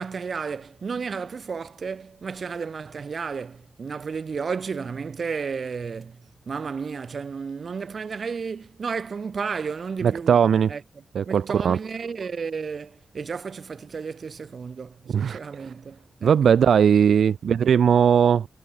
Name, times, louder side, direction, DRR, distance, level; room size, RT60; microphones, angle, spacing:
voice 1, 0.0-10.4 10.7-10.8 11.3-16.4, right 5 dB, 50° right, 5.1 m, -32 dB
voice 2, 10.0-10.7 11.1-11.8 15.1-15.4 16.2-18.5, right 7 dB, 80° right, 0.8 m, -19 dB
wide cardioid pair, 105°, 0 cm